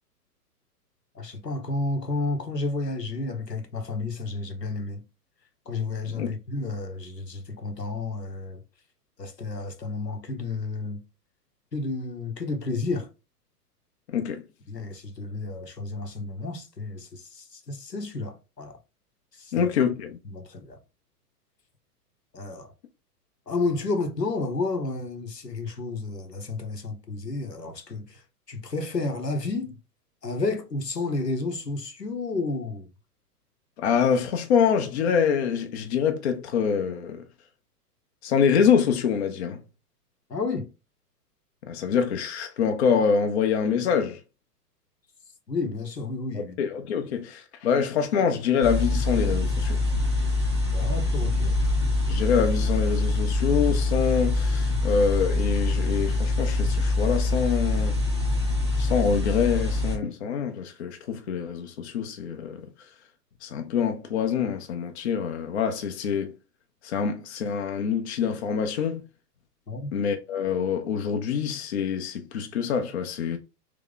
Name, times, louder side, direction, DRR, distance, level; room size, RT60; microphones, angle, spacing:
voice 1, 1.1-5.0 5.7-8.6 9.2-11.0 11.7-13.1 14.7-18.8 19.3-19.7 20.3-20.8 22.3-22.7 23.5-28.2 28.5-29.8 30.2-32.9 40.3-40.7 45.5-46.6 50.7-51.6 69.7-69.9, left 3 dB, 85° left, 1.0 m, -31 dB
voice 2, 14.1-14.4 19.5-20.2 33.8-37.2 38.2-39.6 41.7-44.2 46.3-49.8 52.1-58.0 58.8-62.7 63.4-66.3 66.8-69.0 69.9-73.4, left 7 dB, 45° left, 0.7 m, -25 dB
sound 1, 48.6-60.0, left 2 dB, 20° right, 0.3 m, -24 dB
3.5 x 2.9 x 3.8 m
figure-of-eight pair, 110°, 48 cm